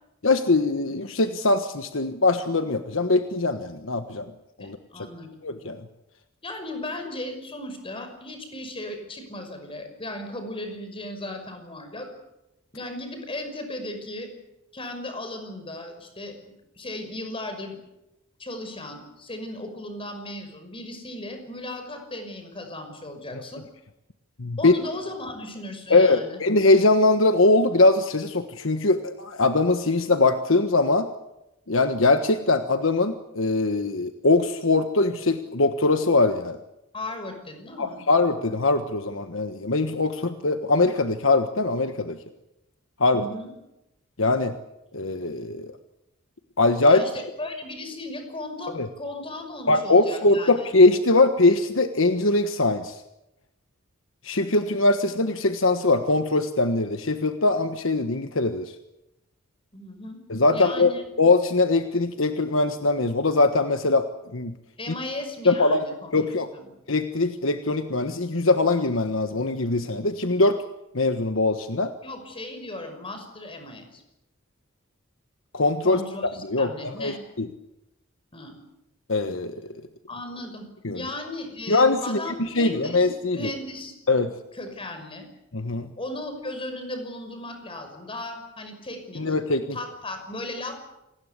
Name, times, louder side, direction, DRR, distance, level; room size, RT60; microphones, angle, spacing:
voice 1, 0.2-4.3 4.6-4.8 5.4-5.8 24.4-24.7 25.9-31.1 31.7-36.6 37.8-42.2 43.0-43.2 44.2-44.5 44.9-45.7 46.6-47.0 48.7-48.9 49.7-53.0 54.2-58.7 60.3-64.5 65.4-65.8 66.1-66.5 66.9-70.6 70.9-71.9 75.5-76.0 76.5-77.5 79.1-79.5 80.8-81.0 81.7-83.4 84.1-84.3 85.5-85.9 89.1-89.8, left 2 dB, 70° left, 8 dB, 1.4 m, -22 dB
voice 2, 4.6-5.3 6.4-12.1 12.7-14.3 14.7-17.8 18.4-23.6 24.6-26.4 36.9-38.0 43.1-43.5 46.9-50.6 59.7-60.2 60.5-61.0 64.8-66.1 66.5-66.7 72.0-74.0 75.8-77.2 78.3-78.6 80.1-80.7 80.9-83.1 83.3-84.0 84.5-85.3 86.0-89.3 89.7-90.7, left 1 dB, 25° left, 6 dB, 5.8 m, -36 dB
28.0 x 20.0 x 8.3 m, 0.91 s
head